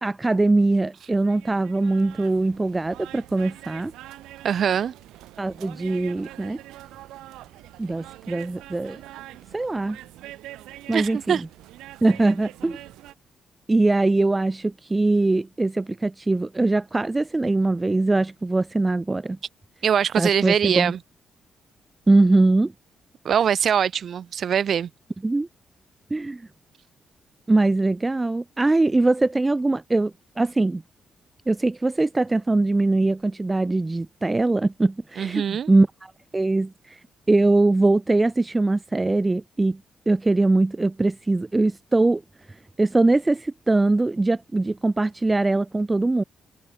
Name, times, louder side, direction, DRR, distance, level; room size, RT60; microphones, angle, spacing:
voice 1, 0.0-3.9 5.4-6.6 7.8-9.0 9.5-10.0 10.9-11.5 12.0-12.8 13.7-19.4 20.2-20.9 22.1-22.7 25.2-25.5 26.1-26.5 27.5-30.8 31.5-37.0 37.3-39.8 40.1-42.2 42.5-46.2, right 2 dB, 20° right, 0.9 m, -22 dB
sound 1, 1.1-13.1, right 15 dB, 90° right, 6.7 m, -44 dB
voice 2, 4.4-4.9 10.9-11.4 19.8-21.0 23.2-24.9 35.2-35.7, right 8 dB, 65° right, 0.4 m, -22 dB
supercardioid pair, 60°, 0 cm